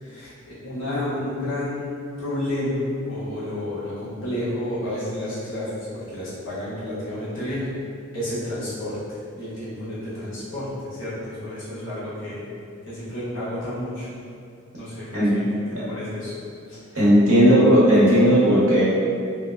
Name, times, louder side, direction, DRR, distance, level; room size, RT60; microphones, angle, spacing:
voice 1, 0.0-7.7 8.1-12.5 12.9-14.1 14.7-15.4 15.7-16.3 16.7-16.8 17.2-17.3, left 1 dB, 60° left, -11 dB, 1.0 m, -31 dB
voice 2, 16.9-18.8, equal, 85° right, -9 dB, 0.9 m, -15 dB
2.8 x 2.1 x 2.2 m, 2.4 s
head